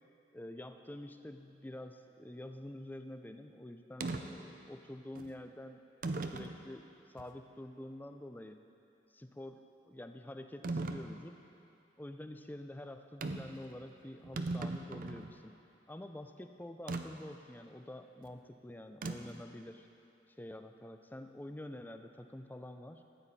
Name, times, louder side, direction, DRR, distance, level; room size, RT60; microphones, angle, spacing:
voice 1, 0.3-5.8 6.3-6.9 7.1-8.6 9.1-11.4 12.0-15.6 15.9-19.9 20.4-23.0, left 1 dB, 10° left, 7 dB, 0.4 m, -47 dB
sound 1, 4.0-4.2 5.2-5.3 6.0-6.6 7.2-7.3 10.6-11.1 13.2-13.6 13.9-14.0 14.2-15.3 16.9-17.0 19.0-19.4, right 3 dB, 50° right, 0.5 m, -37 dB
14.0 x 9.2 x 4.1 m, 2.7 s
head